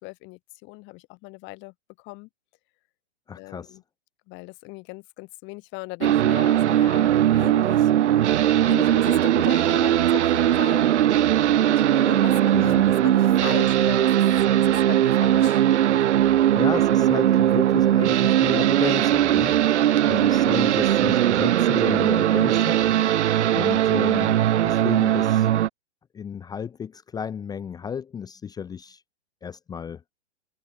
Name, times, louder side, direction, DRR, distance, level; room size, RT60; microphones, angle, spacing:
voice 1, 0.0-2.3 3.4-3.8 4.3-7.9 8.7-10.9 11.5-14.1 14.5-15.6 15.9-16.2 20.1-20.5, left 25 dB, 35° left, 2.4 m, -38 dB
voice 2, 3.3-3.8 12.5-12.9 16.5-19.5 20.0-23.1 23.5-24.4 24.6-25.5 26.1-29.0 29.4-30.0, left 7 dB, 10° left, 0.7 m, -33 dB
sound 1, 6.0-25.7, right 12 dB, 75° right, 0.5 m, -19 dB
hypercardioid pair, 120°, 35 cm